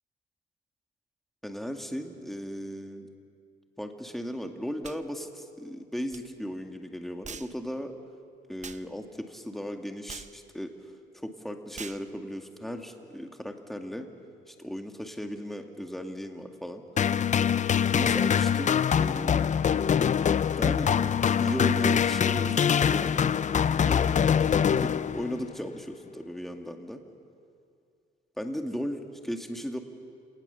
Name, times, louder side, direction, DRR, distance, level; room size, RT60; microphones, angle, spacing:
voice 1, 1.4-3.1 3.8-7.9 8.5-10.9 11.2-14.1 14.5-16.8 17.9-19.6 20.6-21.1 21.4-24.2 24.7-27.0 28.4-29.8, equal, ahead, 4 dB, 2.1 m, -36 dB
sound 1, 4.8-5.0 6.1-6.2 7.2-7.6 8.6-8.9 10.1-10.4 11.8-12.1, right 6 dB, 35° right, 0.8 m, -42 dB
sound 2, 17.0-25.5, left 8 dB, 40° left, 0.5 m, -24 dB
29.0 x 19.0 x 7.0 m, 2.3 s
cardioid pair, 90°, 20 cm